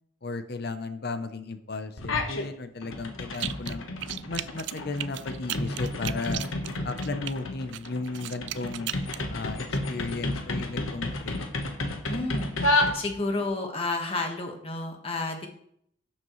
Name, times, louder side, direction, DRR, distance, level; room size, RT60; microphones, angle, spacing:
voice 1, 0.2-3.8 4.3-6.4 6.8-8.9 9.3-11.4, left 3 dB, 50° left, 10 dB, 0.7 m, -35 dB
sound 1, 2.0-2.5 2.8-13.5, left 2 dB, 85° left, 1.3 m, -31 dB
Squelching Noises, 3.3-3.8 4.0-7.3 7.7-9.2, right 14 dB, 60° right, 0.3 m, -35 dB
voice 2, 12.1-12.5 12.9-15.5, left 2 dB, 30° left, 3 dB, 1.5 m, -31 dB
12.0 x 7.4 x 3.2 m, 0.70 s
head